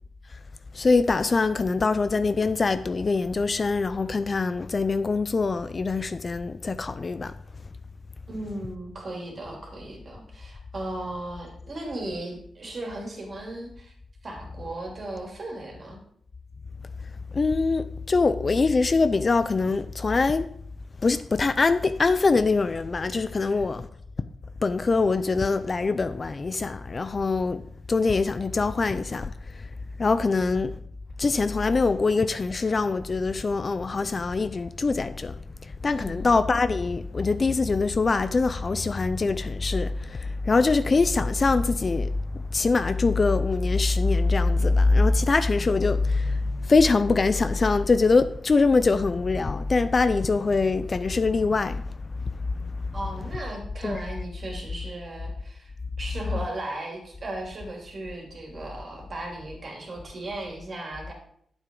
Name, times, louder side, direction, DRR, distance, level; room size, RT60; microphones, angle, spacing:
voice 1, 0.7-7.3 17.3-20.5 21.0-23.9 24.6-27.6 27.9-29.7 30.0-30.7 31.2-35.3 35.6-51.9 52.6-52.7 53.8-54.0, left 3 dB, 40° left, 0.4 m, -23 dB
voice 2, 8.3-13.9 14.2-16.0 23.4-23.6 35.9-36.4 52.9-55.7 56.0-61.1, right 1 dB, 45° right, 2.9 m, -36 dB
9.0 x 7.6 x 3.8 m
cardioid pair, 80°, 0 cm